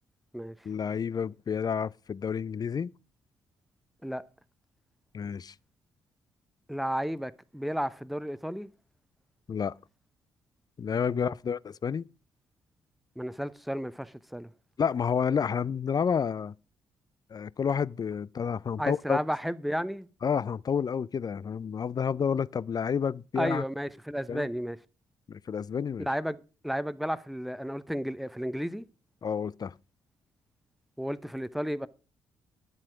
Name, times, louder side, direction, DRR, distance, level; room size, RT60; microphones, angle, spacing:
voice 1, 0.6-2.9 5.1-5.5 9.5-9.7 10.8-12.0 14.8-16.5 17.3-19.2 20.2-23.6 24.3-24.5 25.3-26.1 29.2-29.7, left 7 dB, 35° left, 0.4 m, -30 dB
voice 2, 6.7-8.7 11.1-11.3 13.2-14.5 18.8-20.1 23.4-24.8 26.0-26.4 26.6-28.8 31.0-31.9, equal, ahead, 0.7 m, -32 dB
10.5 x 7.4 x 4.9 m
hypercardioid pair, 40°, 11 cm